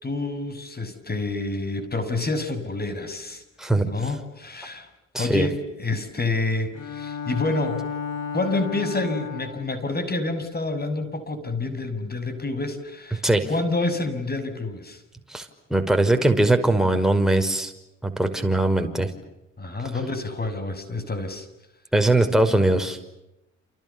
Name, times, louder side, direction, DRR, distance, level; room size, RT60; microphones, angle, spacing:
voice 1, 0.0-3.4 3.9-4.9 5.2-7.9 8.3-15.0 19.6-21.5, left 2 dB, 25° left, 11 dB, 6.4 m, -28 dB
voice 2, 3.6-3.9 5.1-5.5 13.2-13.5 15.3-17.7 18.0-19.1 21.9-23.0, right 2 dB, ahead, 5 dB, 5.4 m, -21 dB
Bowed string instrument, 6.7-9.8, left 6 dB, 55° left, 5.1 m, -33 dB
29.5 x 29.0 x 7.1 m, 0.90 s
hypercardioid pair, 50°, 36 cm